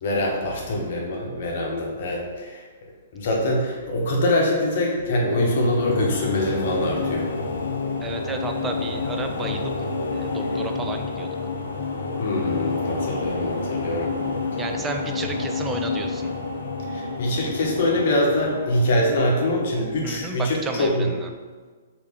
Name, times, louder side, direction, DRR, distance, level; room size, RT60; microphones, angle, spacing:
voice 1, 0.0-2.6 3.1-7.3 12.2-14.1 16.9-21.1, left 1 dB, 55° left, -1 dB, 0.8 m, -24 dB
sound 1, 4.9-20.3, left 3 dB, 70° left, 0.5 m, -29 dB
voice 2, 8.0-11.4 14.6-16.3 20.0-21.3, right 3 dB, 15° right, 4 dB, 0.4 m, -32 dB
3.3 x 2.7 x 3.5 m, 1.4 s
figure-of-eight pair, 120°, 0 cm